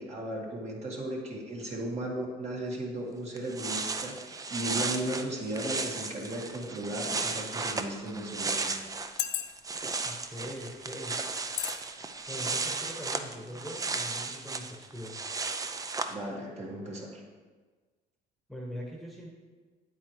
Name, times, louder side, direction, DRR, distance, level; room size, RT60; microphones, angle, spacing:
voice 1, 0.0-8.8 16.1-17.2, right 1 dB, 40° right, -2 dB, 1.9 m, -36 dB
sound 1, 3.1-3.2 3.4-9.2 9.5-16.1, right 4 dB, 20° right, 0.5 m, -35 dB
sound 2, 7.1-7.2 8.0-8.1 9.0-9.8 10.5-10.7 11.6-11.8 12.2-12.4, left 12 dB, 75° left, 0.6 m, -33 dB
voice 2, 10.0-11.2 12.3-15.2 18.5-19.3, equal, ahead, -2 dB, 1.3 m, -42 dB
8.9 x 8.4 x 3.2 m, 1.4 s
cardioid pair, 110°, 17 cm